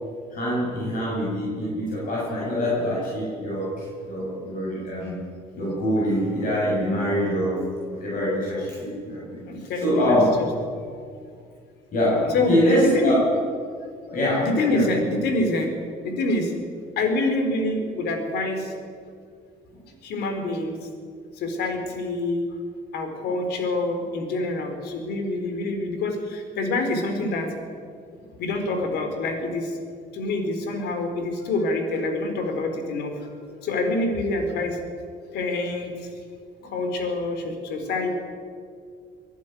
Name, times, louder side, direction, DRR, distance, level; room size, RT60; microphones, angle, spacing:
voice 1, 0.3-5.3 5.5-9.5 9.8-10.3 11.9-13.2 14.1-14.9, equal, 55° left, -6 dB, 7.8 m, -24 dB
voice 2, 9.5-10.5 10.8-11.1 12.3-13.2 14.4-15.7 16.0-16.5 17.0-18.7 20.0-20.9 21.3-22.4 22.9-27.5 28.4-29.8 30.1-33.3 33.6-34.8 35.3-36.1 36.6-38.2, left 2 dB, 75° left, 5 dB, 4.3 m, -26 dB
24.0 x 12.0 x 9.4 m, 2.2 s
cardioid pair, 110°, 17 cm